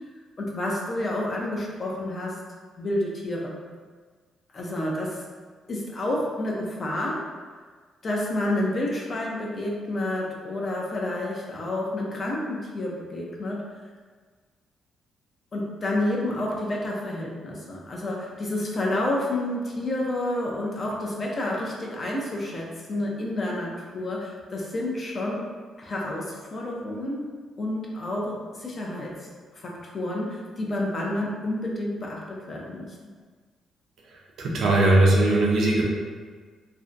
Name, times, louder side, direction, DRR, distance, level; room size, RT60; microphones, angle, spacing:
voice 1, 0.4-2.4 2.8-3.5 4.5-5.2 5.7-7.2 8.0-13.6 15.5-25.4 25.8-27.3 27.6-29.1 29.6-32.9, left 1 dB, 40° left, -2 dB, 0.5 m, -29 dB
voice 2, 34.4-35.8, right 2 dB, 70° right, -2 dB, 0.5 m, -19 dB
2.5 x 2.1 x 2.5 m, 1.5 s
cardioid pair, 90°, 0 cm